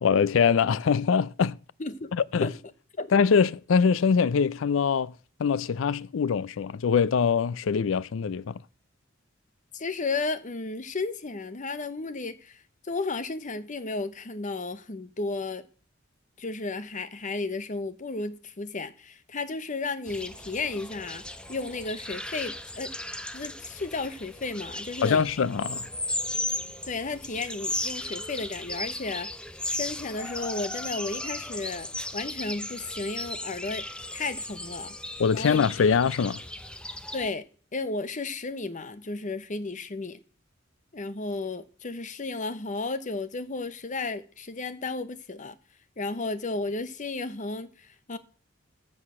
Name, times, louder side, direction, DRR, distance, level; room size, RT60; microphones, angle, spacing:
voice 1, 0.0-1.6 2.3-2.5 3.1-5.1 5.4-8.6 25.0-25.9 35.2-36.4, left 6 dB, 80° left, 0.4 m, -23 dB
voice 2, 1.8-2.1 2.4-2.5 3.0-3.1 9.7-12.6 12.9-15.6 16.4-21.2 21.5-22.9 23.3-25.2 26.9-29.3 29.7-31.9 32.1-33.8 34.1-35.0 35.3-35.6 37.1-37.4 37.7-40.2 40.9-45.6 46.0-48.2, left 3 dB, 40° left, 0.9 m, -33 dB
sound 1, 20.1-37.3, left 1 dB, 5° left, 0.6 m, -36 dB
14.5 x 4.8 x 6.1 m
head